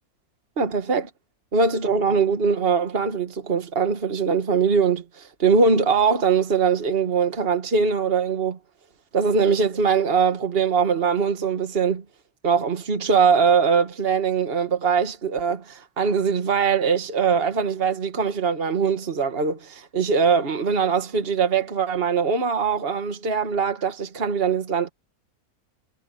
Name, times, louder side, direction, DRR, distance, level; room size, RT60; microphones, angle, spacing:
voice 1, 0.6-1.1 1.5-8.6 9.1-12.0 12.4-24.9, right 6 dB, 40° right, 1.9 m, -22 dB
omnidirectional pair, 1.6 m